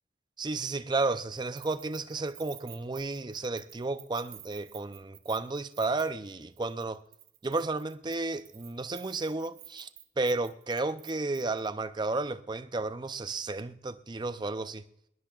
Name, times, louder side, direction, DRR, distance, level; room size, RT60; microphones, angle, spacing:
voice 1, 0.4-7.0 7.4-9.9 10.2-14.8, right 3 dB, 25° right, 0.5 m, -32 dB
Keys jangling, 1.4-6.3 6.6-6.9 7.1-11.7, right 12 dB, 55° right, 0.9 m, -51 dB
21.0 x 20.5 x 2.4 m
head